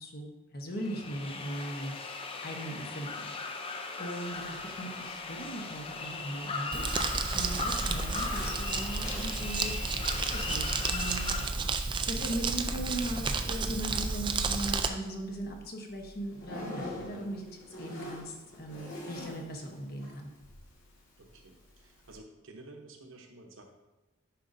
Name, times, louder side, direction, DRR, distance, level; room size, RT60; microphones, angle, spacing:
voice 1, 0.0-1.9 2.4-3.6 4.0-7.0 7.3-11.4 12.1-20.3, right 1 dB, 50° left, 2 dB, 1.0 m, -39 dB
sound 1, 0.8-11.5, left 3 dB, 25° left, 0.5 m, -38 dB
Zipper (clothing), 4.2-22.2, left 1 dB, 75° left, 1.9 m, -48 dB
Crumpling crinkling, 6.7-14.9, right 4 dB, 25° right, 0.4 m, -32 dB
voice 2, 18.7-19.0 21.2-23.6, right 2 dB, 70° right, 3 dB, 0.9 m, -52 dB
10.0 x 5.1 x 2.6 m, 1.0 s
head